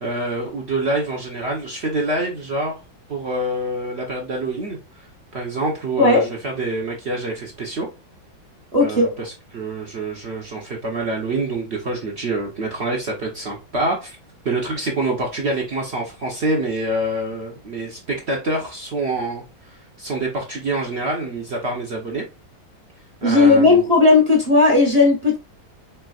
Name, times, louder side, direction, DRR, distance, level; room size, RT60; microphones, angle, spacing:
voice 1, 0.0-2.8 3.1-4.8 5.3-7.9 8.8-14.2 14.4-22.2 23.2-23.8, right 2 dB, 60° right, 0.6 m, -26 dB
voice 2, 6.0-6.3 8.7-9.1 23.2-25.4, left 3 dB, 30° right, 0.7 m, -15 dB
4.4 x 3.4 x 2.3 m
omnidirectional pair, 2.1 m